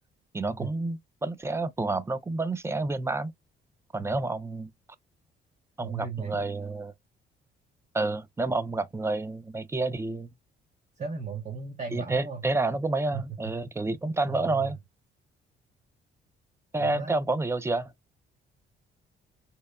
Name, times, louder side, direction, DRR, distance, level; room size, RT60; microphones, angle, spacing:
voice 1, 0.3-3.3 3.9-4.7 5.8-6.9 7.9-10.3 11.9-14.8 16.7-17.9, right 2 dB, 15° right, 0.3 m, -29 dB
voice 2, 5.8-6.5 11.0-12.4 13.1-13.2 14.3-14.7 16.8-17.1, right 5 dB, 35° right, 0.7 m, -36 dB
2.7 x 2.1 x 2.3 m
cardioid pair, 90°, 20 cm